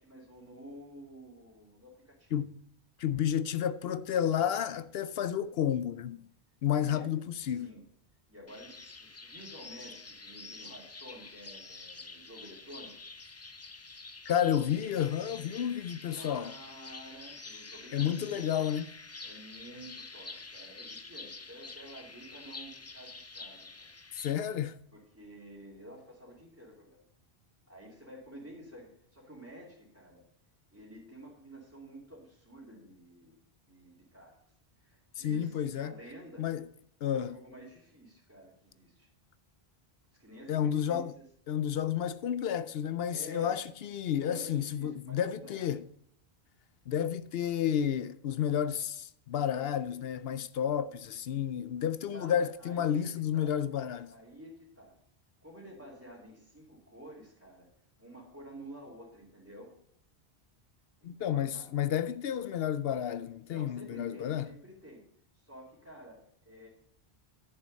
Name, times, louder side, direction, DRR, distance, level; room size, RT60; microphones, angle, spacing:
voice 1, 0.0-2.4 6.7-7.1 7.5-7.8 8.3-12.9 16.1-18.7 19.2-23.9 24.9-27.0 27.7-30.2 30.7-33.4 33.7-34.3 34.8-36.5 37.1-39.1 40.1-41.3 43.1-43.6 44.2-45.6 52.1-53.6 54.1-55.0 55.4-57.7 58.0-59.7 61.0-61.7 63.5-65.0 65.3-66.7, right 1 dB, 15° right, 2.7 m, -50 dB
voice 2, 3.0-6.3 6.6-7.7 14.3-16.5 17.9-18.9 24.1-24.8 35.2-35.9 36.4-36.7 37.0-37.4 40.5-41.1 41.5-45.8 46.9-54.1 61.0-64.5, left 9 dB, 75° left, 0.8 m, -31 dB
sound 1, 8.5-24.3, left 3 dB, 25° left, 0.3 m, -47 dB
10.5 x 6.9 x 5.3 m
omnidirectional pair, 1.0 m